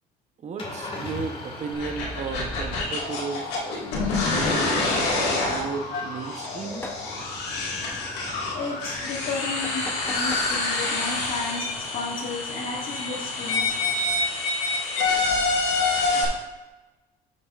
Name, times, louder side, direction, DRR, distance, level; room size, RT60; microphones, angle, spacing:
voice 1, 0.4-3.6 4.3-6.8, right 5 dB, 45° right, 7 dB, 0.8 m, -34 dB
Engine starting / Idling, 0.6-14.7, left 2 dB, 30° left, 1.8 m, -42 dB
sound 1, 1.7-16.2, left 3 dB, 85° left, 1.9 m, -27 dB
sound 2, 6.7-7.0 9.6-10.5, left 2 dB, 15° left, 0.8 m, -38 dB
voice 2, 8.5-11.7 11.9-13.8, left 3 dB, 55° left, -4 dB, 1.7 m, -33 dB
11.5 x 6.5 x 2.4 m, 1.2 s
cardioid pair, 110°, 17 cm